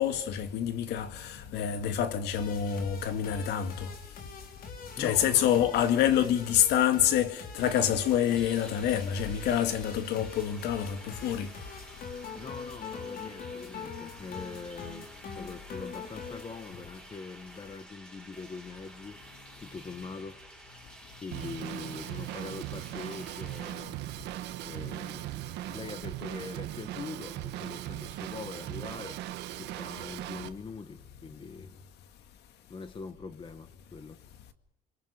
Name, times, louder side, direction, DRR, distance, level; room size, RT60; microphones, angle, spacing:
voice 1, 0.0-3.9 5.0-11.5, left 10 dB, 80° left, 2.2 m, -27 dB
sound 1, 2.3-16.4, left 5 dB, 60° left, 4.8 m, -43 dB
voice 2, 4.9-5.7 12.4-19.2 19.6-20.9 21.2-24.0 24.6-25.4 25.7-29.2 29.5-31.7 32.7-34.2, left 4 dB, 30° left, 1.6 m, -43 dB
sound 2, 7.6-23.7, right 1 dB, 5° left, 6.3 m, -51 dB
Drum kit / Drum, 21.3-30.5, right 14 dB, 85° right, 1.5 m, -39 dB
30.0 x 24.5 x 5.2 m
cardioid pair, 110°, 17 cm